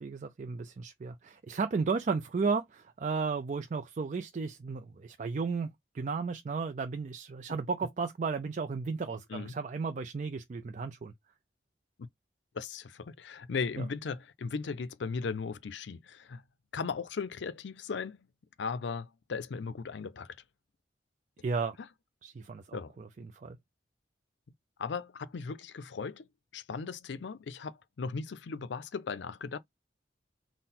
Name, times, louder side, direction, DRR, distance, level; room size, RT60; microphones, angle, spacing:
voice 1, 0.0-11.1 13.8-13.9 21.4-21.8 22.2-23.6, right 4 dB, 45° right, 0.4 m, -34 dB
voice 2, 12.5-16.4 16.7-18.3 18.6-20.4 21.8-21.9 22.7-23.0 24.8-26.3 26.5-29.6, left 5 dB, 80° left, 0.5 m, -37 dB
3.8 x 2.1 x 4.1 m
head